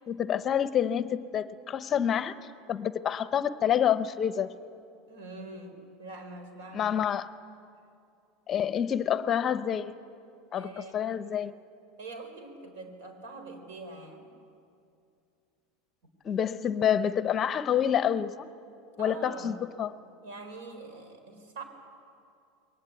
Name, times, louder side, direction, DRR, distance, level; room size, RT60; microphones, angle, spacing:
voice 1, 0.1-2.3 2.7-4.5 6.7-7.3 8.5-10.0 10.5-11.5 16.2-18.5 19.0-19.9, left 9 dB, 30° left, 13 dB, 0.7 m, -28 dB
voice 2, 5.1-6.9 10.5-11.0 12.0-14.4 19.0-19.7 20.2-21.6, right 2 dB, 80° right, 6 dB, 4.3 m, -44 dB
21.5 x 19.0 x 9.2 m, 2.5 s
supercardioid pair, 135°, 0 cm